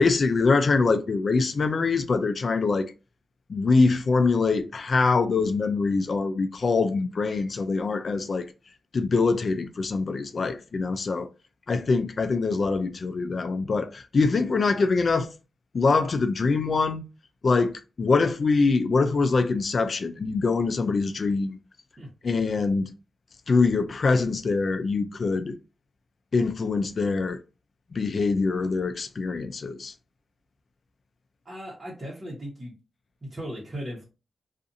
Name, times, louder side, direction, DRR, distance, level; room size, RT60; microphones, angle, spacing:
voice 1, 0.0-2.9 3.5-8.5 8.9-11.3 11.7-15.3 15.7-17.0 17.4-21.6 22.2-22.9 23.5-25.6 26.3-27.4 27.9-29.9, left 4 dB, 55° left, 0.4 m, -24 dB
voice 2, 31.4-32.7 33.2-34.0, equal, 35° right, 1.0 m, -37 dB
2.6 x 2.4 x 2.6 m
cardioid pair, 75°, 0 cm